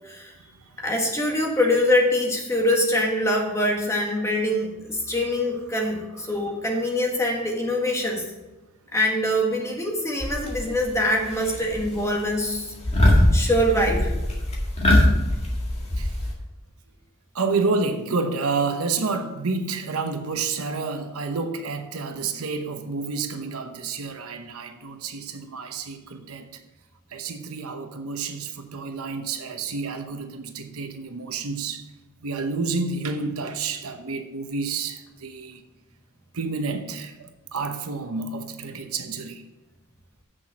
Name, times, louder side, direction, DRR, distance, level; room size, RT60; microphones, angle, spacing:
voice 1, 0.8-8.2 8.9-12.7 13.1-14.1, left 1 dB, 15° left, 1.7 m, -24 dB
sound 1, 10.2-10.9 11.2-11.9 12.2-12.5 12.8-16.3, left 1 dB, 30° left, 1.8 m, -21 dB
voice 2, 17.3-26.5 27.1-31.8 32.2-35.6 36.3-39.4, right 4 dB, 75° right, 0.9 m, -29 dB
7.7 x 6.4 x 6.1 m
head